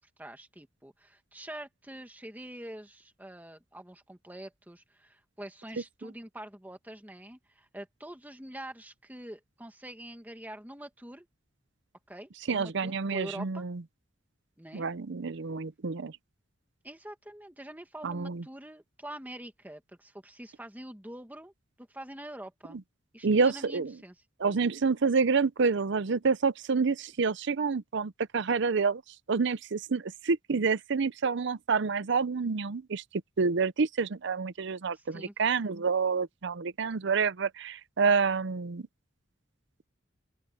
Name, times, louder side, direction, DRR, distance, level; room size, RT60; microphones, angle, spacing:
voice 1, 0.0-11.3 12.1-13.7 14.6-14.9 16.8-21.5 21.8-22.8 23.1-24.1 34.9-35.3, right 1 dB, 10° right, 1.7 m, -45 dB
voice 2, 12.5-13.8 14.7-16.1 18.0-18.4 23.2-23.9 24.4-29.0 29.3-33.0 33.4-38.9, right 5 dB, 65° right, 0.6 m, -28 dB
open air
head